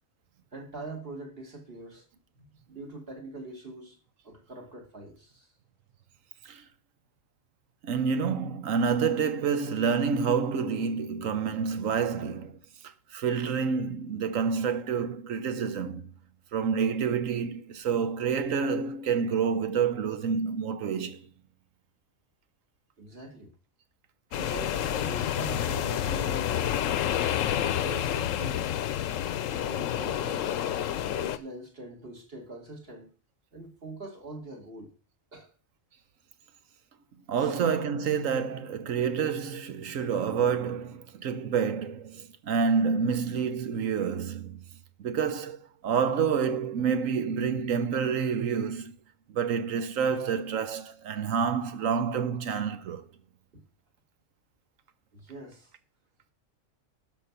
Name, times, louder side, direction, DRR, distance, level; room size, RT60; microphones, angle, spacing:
voice 1, 0.5-2.0 2.4-4.0 4.2-5.5 23.0-23.5 24.3-26.9 27.6-28.7 29.5-30.5 31.0-33.1 33.5-34.9 35.3-35.5 37.4-37.6 53.5-53.6 55.1-55.7, right 2 dB, 50° right, 2.0 m, -43 dB
voice 2, 7.8-12.6 13.1-16.1 16.5-21.3 37.3-44.6 45.0-48.9 49.3-53.1, right 6 dB, 90° right, 1.3 m, -28 dB
sound 1, 24.3-31.4, left 10 dB, 85° left, 1.1 m, -29 dB
12.0 x 5.3 x 5.7 m
omnidirectional pair, 1.3 m